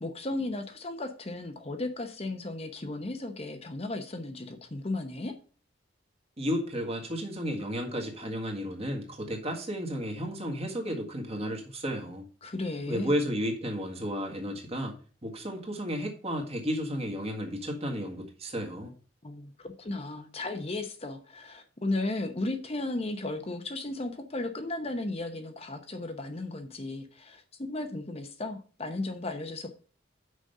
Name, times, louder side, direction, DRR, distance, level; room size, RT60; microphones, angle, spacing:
voice 1, 0.0-5.3 12.4-13.1 19.2-29.7, left 2 dB, 30° left, 0.8 m, -35 dB
voice 2, 6.4-12.3 12.9-14.9 15.2-18.9, equal, 35° right, 1.8 m, -33 dB
6.4 x 5.2 x 6.6 m
head